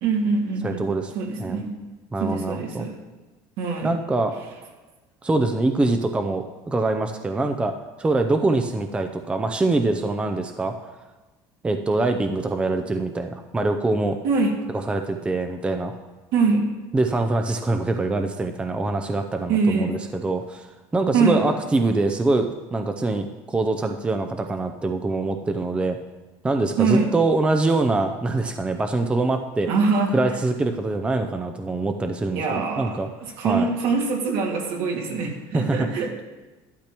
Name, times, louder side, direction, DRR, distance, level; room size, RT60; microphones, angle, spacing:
voice 1, 0.0-1.7 2.2-3.0 3.6-3.9 14.2-14.6 16.3-16.7 19.5-19.9 21.1-21.4 26.8-27.1 29.7-30.4 32.3-36.2, right 4 dB, 75° right, 1 dB, 2.1 m, -23 dB
voice 2, 0.6-1.1 1.4-1.6 2.1-2.9 3.8-4.3 5.2-10.9 11.6-14.2 14.9-15.9 16.9-26.0 26.4-29.7 30.1-33.1 33.4-33.7 35.5-35.9, right 2 dB, 10° right, 6 dB, 0.5 m, -24 dB
12.0 x 11.5 x 3.0 m, 1.2 s
cardioid pair, 145°, 10 cm